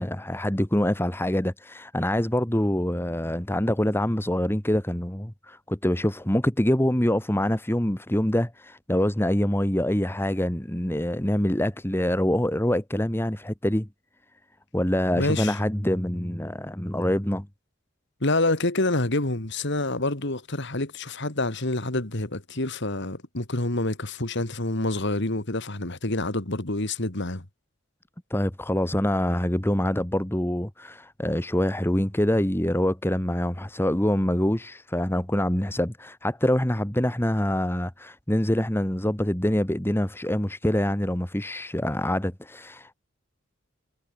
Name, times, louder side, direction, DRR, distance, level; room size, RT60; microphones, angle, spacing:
voice 1, 0.0-13.9 14.7-17.5 28.3-42.9, left 1 dB, 10° left, 1.4 m, -25 dB
voice 2, 15.2-15.6 18.2-27.4, left 2 dB, 55° left, 2.7 m, -27 dB
head